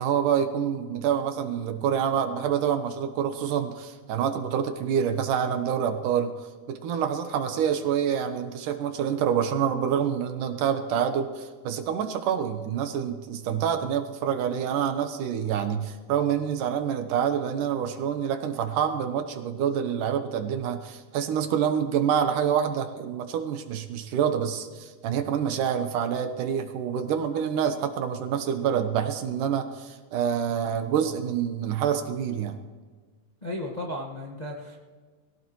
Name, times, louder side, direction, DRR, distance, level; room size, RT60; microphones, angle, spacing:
voice 1, 0.0-6.3 6.7-32.6, right 8 dB, 75° right, 7 dB, 2.6 m, -27 dB
voice 2, 33.4-34.8, left 1 dB, 50° left, -1 dB, 0.4 m, -34 dB
21.5 x 17.0 x 3.1 m, 1.4 s
omnidirectional pair, 3.8 m